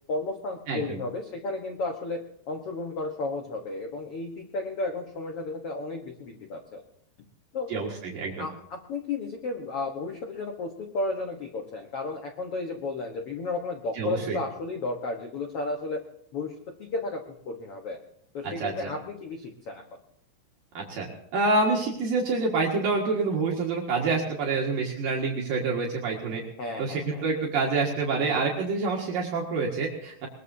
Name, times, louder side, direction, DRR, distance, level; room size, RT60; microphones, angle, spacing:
voice 1, 0.1-6.8 7.5-7.7 8.4-16.0 16.3-16.5 16.8-18.0 18.3-19.8 24.0-24.2 24.5-24.6 26.6-27.2, left 3 dB, 75° left, 4 dB, 1.3 m, -33 dB
voice 2, 0.7-1.0 7.7-8.5 13.9-14.4 18.6-18.9 20.7-21.1 21.3-26.4 26.8-30.3, right 3 dB, 65° right, -2 dB, 3.3 m, -27 dB
21.5 x 21.0 x 2.8 m, 0.73 s
omnidirectional pair, 4.6 m